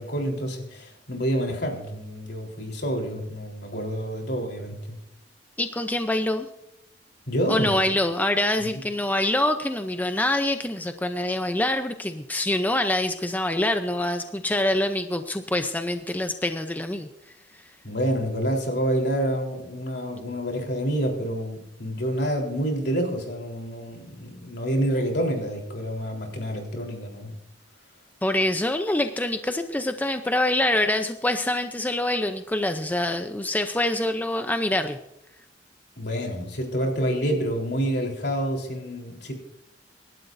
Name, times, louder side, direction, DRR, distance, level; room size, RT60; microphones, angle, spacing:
voice 1, 0.0-5.0 7.3-7.7 8.6-8.7 17.8-27.3 36.0-39.3, equal, 65° left, 1 dB, 3.8 m, -28 dB
voice 2, 5.6-6.5 7.5-17.1 28.2-35.0, left 1 dB, 10° left, 7 dB, 0.6 m, -25 dB
26.5 x 12.0 x 2.6 m, 0.83 s
head